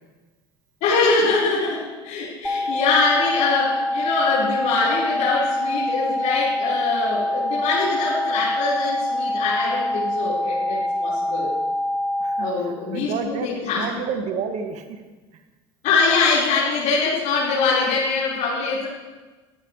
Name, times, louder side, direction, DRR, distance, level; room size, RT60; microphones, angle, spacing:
voice 1, 0.8-11.5 12.4-13.8 15.8-18.9, left 4 dB, 60° left, -9 dB, 4.9 m, -23 dB
sound 1, 2.4-12.5, left 1 dB, ahead, 2.2 m, -25 dB
voice 2, 12.9-15.0, right 6 dB, 55° right, 6 dB, 2.1 m, -30 dB
25.0 x 13.5 x 3.3 m, 1.2 s
hypercardioid pair, 75°, 14 cm